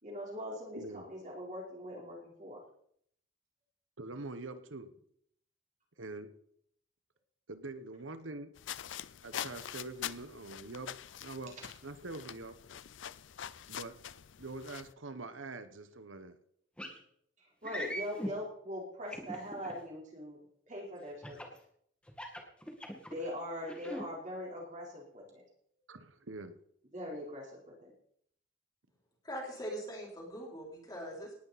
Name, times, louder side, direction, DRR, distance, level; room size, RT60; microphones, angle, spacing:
voice 1, 0.0-2.6 17.4-20.4 20.7-21.5 23.1-25.4 26.9-27.9, equal, 40° right, -3 dB, 4.2 m, -42 dB
voice 2, 0.7-1.1 4.0-4.9 6.0-6.3 7.5-8.5 9.2-11.5 11.8-12.6 13.7-13.9 14.4-16.4 25.9-26.6, right 2 dB, 85° right, 11 dB, 1.2 m, -44 dB
sound 1, 8.5-14.9, left 10 dB, 75° left, 0.5 m, -44 dB
sound 2, 16.8-17.0 17.6-18.3 19.1-19.7 21.2-21.6 22.1-23.2 23.6-24.0, equal, 5° left, 2.0 m, -40 dB
voice 3, 29.2-31.3, equal, 20° left, -2 dB, 4.1 m, -42 dB
19.0 x 10.0 x 4.2 m, 0.68 s
head